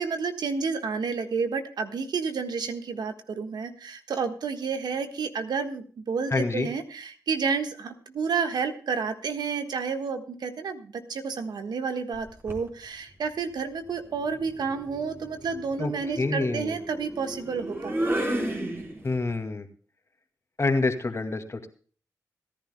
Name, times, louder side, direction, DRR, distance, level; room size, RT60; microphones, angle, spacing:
voice 1, 0.0-18.2, right 5 dB, 75° right, 7 dB, 1.4 m, -30 dB
voice 2, 6.3-6.7 15.8-15.9 16.2-16.7 19.0-19.7 20.6-21.7, left 3 dB, 40° left, 6 dB, 2.2 m, -27 dB
sound 1, 12.1-12.7 14.1-19.3, right 1 dB, 35° right, 4.3 m, -33 dB
26.0 x 10.5 x 2.2 m, 0.41 s
supercardioid pair, 45°, 7 cm